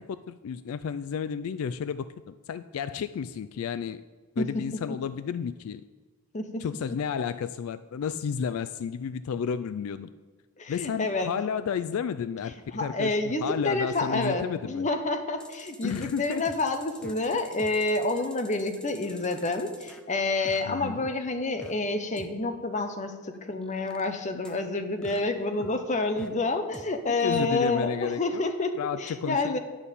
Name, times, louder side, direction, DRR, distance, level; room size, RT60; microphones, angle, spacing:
voice 1, 0.0-4.0 4.4-5.8 6.6-10.1 10.7-12.5 12.8-13.1 13.4-14.9 15.8-16.4 20.7-21.0 27.2-28.5 28.8-29.6, left 7 dB, 75° left, 14 dB, 0.3 m, -32 dB
voice 2, 6.3-6.6 10.6-11.3 12.7-29.6, left 2 dB, 35° left, 7 dB, 0.9 m, -28 dB
sound 1, 15.4-20.0 20.4-21.7 22.2-22.3 22.8-22.9 23.3-24.6 25.0-26.3 26.7-26.8 27.3-27.4, equal, 5° left, 0.6 m, -47 dB
10.0 x 5.5 x 8.3 m, 1.4 s
head